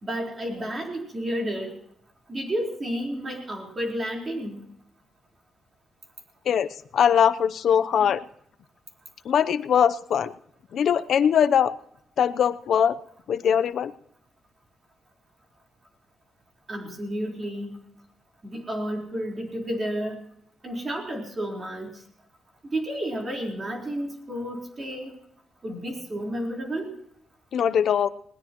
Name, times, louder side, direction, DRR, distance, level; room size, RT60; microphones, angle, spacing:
voice 1, 0.0-1.8 2.3-4.6 16.7-17.8 18.4-20.2 20.6-21.9 22.6-25.1 25.6-26.9, equal, 25° right, 0 dB, 4.2 m, -31 dB
voice 2, 6.9-8.2 9.2-10.3 10.7-11.7 12.2-13.0 13.3-13.9 27.5-28.1, left 8 dB, 65° left, 14 dB, 0.7 m, -21 dB
20.5 x 19.5 x 3.1 m, 0.70 s
cardioid pair, 140°, 0 cm